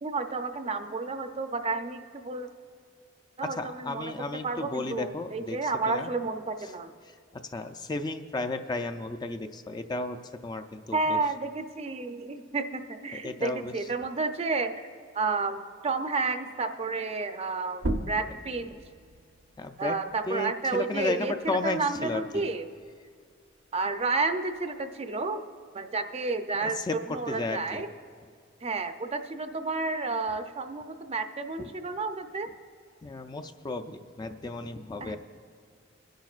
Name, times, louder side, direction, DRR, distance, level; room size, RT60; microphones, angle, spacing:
voice 1, 0.0-2.5 3.4-6.9 10.9-14.9 15.1-18.8 19.8-22.7 23.7-25.4 25.7-27.9 28.6-32.5 35.0-35.2, right 3 dB, 35° right, 8 dB, 0.5 m, -31 dB
voice 2, 3.6-5.6 5.9-6.1 7.5-11.2 13.1-13.7 19.6-19.9 20.3-22.4 26.6-27.0 27.3-27.8 33.0-35.2, left 2 dB, 20° left, 7 dB, 0.4 m, -33 dB
sound 1, 17.7-23.0 23.4-25.1, right 1 dB, 70° right, 0.8 m, -39 dB
23.5 x 10.5 x 2.4 m, 2.1 s
head